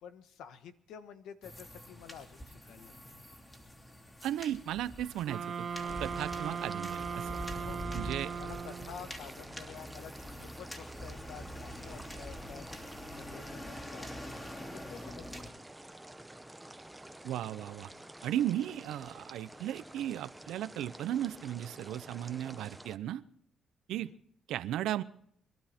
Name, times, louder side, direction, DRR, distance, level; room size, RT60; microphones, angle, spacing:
voice 1, 0.0-3.1 7.6-7.8 8.2-12.6 13.1-14.1 14.7-15.4 24.0-24.2, left 8 dB, 85° left, 10 dB, 1.3 m, -50 dB
sound 1, 1.4-15.5, equal, 20° left, 2.9 m, -45 dB
voice 2, 4.2-5.7 6.0-7.4 7.9-8.3 17.2-17.9 18.2-23.2 23.9-24.1 24.5-25.0, right 12 dB, 85° right, 15 dB, 0.7 m, -35 dB
sound 2, 5.3-9.1, right 6 dB, 55° right, 1.2 m, -38 dB
sound 3, 5.8-23.0, right 1 dB, 10° right, 0.9 m, -50 dB
23.5 x 12.5 x 4.4 m, 0.70 s
cardioid pair, 90°, 0 cm